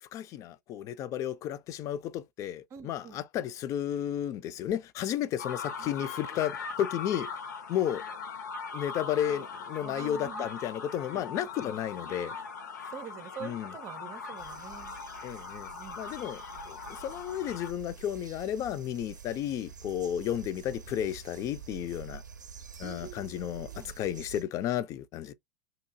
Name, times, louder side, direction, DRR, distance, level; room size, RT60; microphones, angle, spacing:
voice 1, 0.0-7.3 7.7-8.0 8.7-12.4 13.4-13.7 15.2-15.7 16.0-22.2 22.8-25.3, left 10 dB, 35° left, 0.4 m, -33 dB
voice 2, 2.7-3.2 5.8-5.9 9.8-10.5 11.1-11.7 12.3-12.5 12.9-15.0 15.7-16.0 22.8-23.9, right 8 dB, 30° right, 0.6 m, -46 dB
sound 1, 5.4-17.7, left 5 dB, 75° left, 0.7 m, -40 dB
sound 2, 14.4-24.4, right 7 dB, 85° right, 0.5 m, -48 dB
2.8 x 2.6 x 2.5 m
figure-of-eight pair, 90°, 10 cm